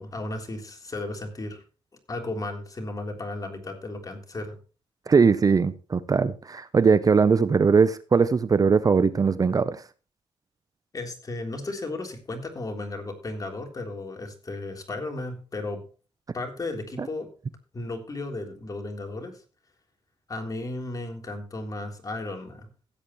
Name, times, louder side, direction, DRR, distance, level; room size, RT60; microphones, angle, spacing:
voice 1, 0.0-1.6 2.1-4.6 10.9-15.8 16.3-17.3 17.7-19.4 20.3-22.7, left 2 dB, 35° left, 3.5 m, -34 dB
voice 2, 5.1-9.8 17.0-17.1, right 5 dB, 35° right, 0.7 m, -20 dB
16.0 x 8.7 x 3.0 m
cardioid pair, 70°, 10 cm